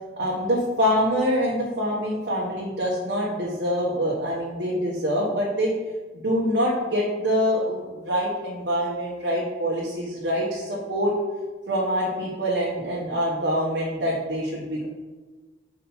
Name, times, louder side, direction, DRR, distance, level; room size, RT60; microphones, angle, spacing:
voice 1, 0.2-5.7 6.1-11.1 11.7-14.9, equal, 70° right, -6 dB, 1.2 m, -25 dB
5.6 x 5.0 x 4.4 m, 1.3 s
head